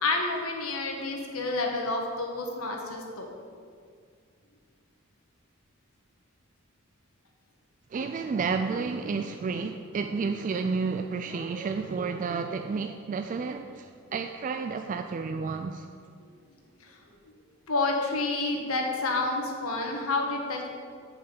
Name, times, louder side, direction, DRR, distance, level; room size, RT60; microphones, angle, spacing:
voice 1, 0.0-3.3 17.7-20.7, left 3 dB, 85° left, 1 dB, 1.3 m, -29 dB
voice 2, 7.9-15.9, right 4 dB, 40° right, 6 dB, 0.3 m, -31 dB
6.7 x 5.6 x 6.9 m, 2.1 s
head